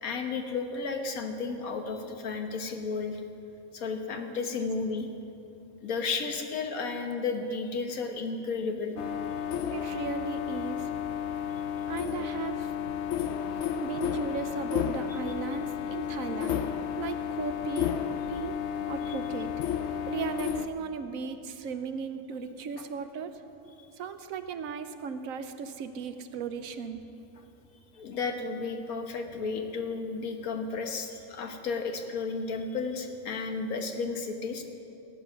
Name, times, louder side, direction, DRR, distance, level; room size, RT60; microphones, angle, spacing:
voice 1, 0.0-3.2 3.7-5.1 5.8-8.9 19.0-19.1 22.8-22.9 27.9-34.6, left 4 dB, 80° left, 4 dB, 1.6 m, -33 dB
sound 1, 9.0-20.7, left 8 dB, 60° left, 0.8 m, -32 dB
voice 2, 9.7-10.9 11.9-12.7 13.8-16.6 17.0-17.9 18.3-18.6 18.9-19.5 20.0-23.4 24.0-27.0, right 6 dB, 75° right, 9 dB, 1.1 m, -36 dB
16.0 x 10.0 x 6.2 m, 2.8 s
omnidirectional pair, 1.5 m